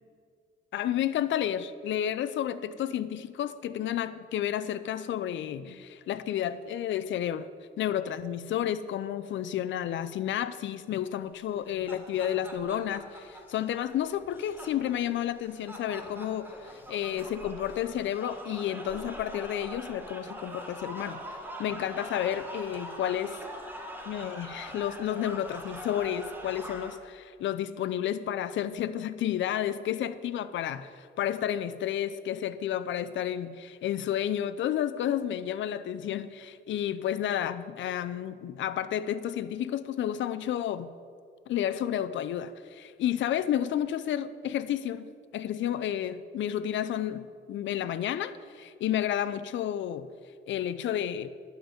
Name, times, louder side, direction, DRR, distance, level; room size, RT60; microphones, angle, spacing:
voice 1, 0.7-7.5 7.8-21.2 21.6-23.4 24.1-40.9 41.5-50.1 50.5-51.3, left 10 dB, 70° left, 13 dB, 0.6 m, -31 dB
sound 1, 11.5-26.9, right 1 dB, 10° right, 1.5 m, -43 dB
11.5 x 5.2 x 7.9 m, 2.2 s
cardioid pair, 90°, 20 cm